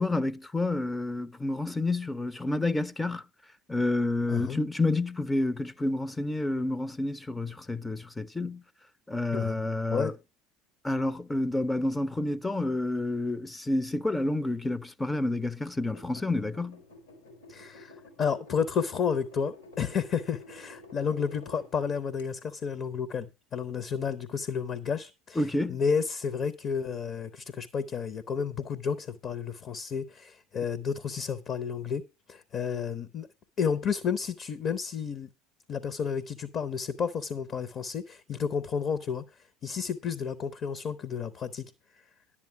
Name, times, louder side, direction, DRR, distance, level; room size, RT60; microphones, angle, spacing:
voice 1, 0.0-3.2 3.7-8.6 9.1-10.1 10.8-16.8 25.4-25.8, left 2 dB, 10° left, 0.6 m, -29 dB
sound 1, 15.8-21.7 22.2-22.3, left 2 dB, 80° left, 4.2 m, -50 dB
voice 2, 17.5-25.4 25.7-32.0 32.3-33.3 33.6-35.3 35.7-41.7, left 6 dB, 40° left, 0.8 m, -31 dB
11.0 x 8.6 x 4.6 m
figure-of-eight pair, 65°, 0 cm